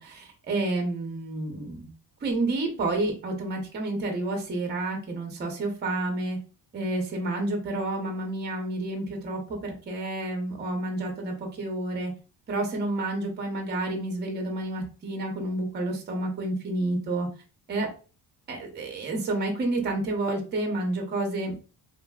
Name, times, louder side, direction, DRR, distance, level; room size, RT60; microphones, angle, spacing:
voice 1, 0.0-1.9 2.2-6.4 6.7-12.1 12.5-17.3 17.7-17.9 18.5-21.5, right 2 dB, 25° right, 2 dB, 0.6 m, -30 dB
3.2 x 2.5 x 2.2 m, 0.35 s
cardioid pair, 175°, 41 cm